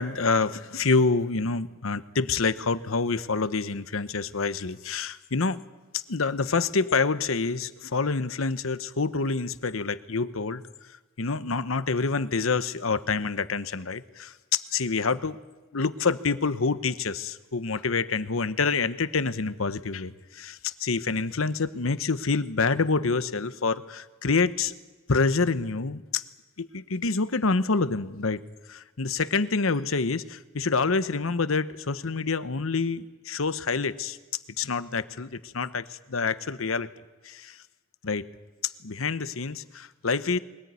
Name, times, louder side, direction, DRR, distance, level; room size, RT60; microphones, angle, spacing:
voice 1, 0.0-5.6 5.9-15.4 15.7-24.8 25.1-26.2 26.6-28.4 28.7-34.2 34.6-36.9 37.2-37.6 38.0-38.3 38.6-40.4, left 4 dB, 80° left, 13 dB, 1.0 m, -27 dB
22.5 x 18.5 x 9.5 m, 1.2 s
head